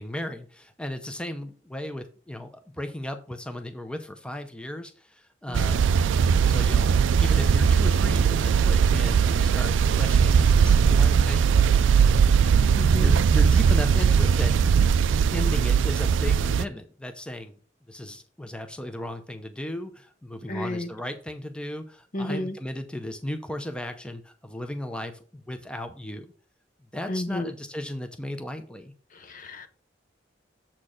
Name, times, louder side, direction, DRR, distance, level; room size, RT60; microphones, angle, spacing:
voice 1, 0.0-5.9 6.4-6.9 7.2-11.6 13.0-14.6 15.3-17.5 17.9-26.3 26.9-28.9, left 1 dB, 5° left, 0.6 m, -36 dB
sound 1, 5.5-16.6, right 6 dB, 75° right, 0.3 m, -20 dB
voice 2, 12.8-13.2 20.5-20.9 22.1-22.6 27.1-27.5 29.1-29.7, left 1 dB, 45° left, 0.8 m, -32 dB
7.4 x 4.5 x 4.9 m
head